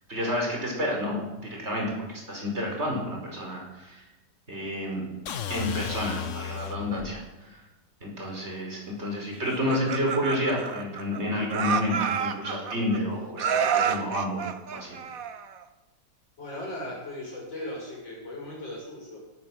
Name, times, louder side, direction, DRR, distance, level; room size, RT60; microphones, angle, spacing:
voice 1, 0.1-4.0 4.5-5.0 5.5-7.6 8.0-15.0, left 1 dB, 35° right, -1 dB, 5.3 m, -30 dB
sound 1, 5.3-7.2, left 10 dB, 55° left, 1.0 m, -34 dB
Laughter, 9.5-11.2 11.5-13.0 13.4-15.6, right 7 dB, 55° right, 1.3 m, -29 dB
voice 2, 16.4-19.2, left 1 dB, 85° left, -3 dB, 7.6 m, -37 dB
17.0 x 12.5 x 6.5 m, 1.0 s
omnidirectional pair, 1.9 m